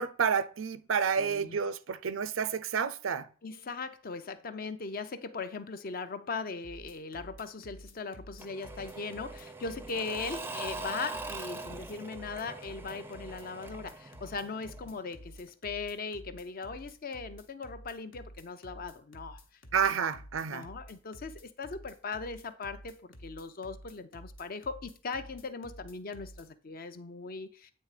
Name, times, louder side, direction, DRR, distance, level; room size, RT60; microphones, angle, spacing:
voice 1, 0.0-3.3 19.7-20.6, right 6 dB, 85° right, 0.5 m, -30 dB
voice 2, 1.2-1.6 3.4-19.4 20.5-27.7, left 4 dB, 50° left, 0.6 m, -39 dB
sound 1, 6.6-26.5, equal, 75° left, 1.1 m, -50 dB
Engine / Mechanisms / Drill, 8.4-15.1, right 2 dB, 10° right, 0.5 m, -42 dB
8.6 x 3.3 x 4.9 m
head